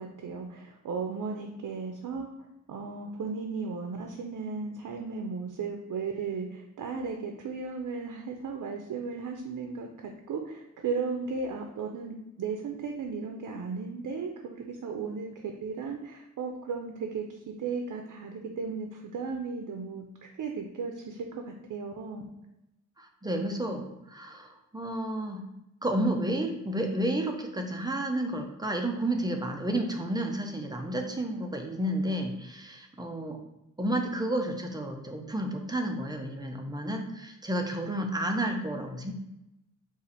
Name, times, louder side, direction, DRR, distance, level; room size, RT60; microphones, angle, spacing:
voice 1, 0.0-2.3 2.7-22.2, right 5 dB, 80° right, 3 dB, 0.5 m, -35 dB
voice 2, 23.0-25.4 25.8-33.4 33.8-39.1, right 1 dB, 15° right, 3 dB, 0.4 m, -31 dB
4.2 x 2.5 x 4.0 m, 0.89 s
wide cardioid pair, 175°, 31 cm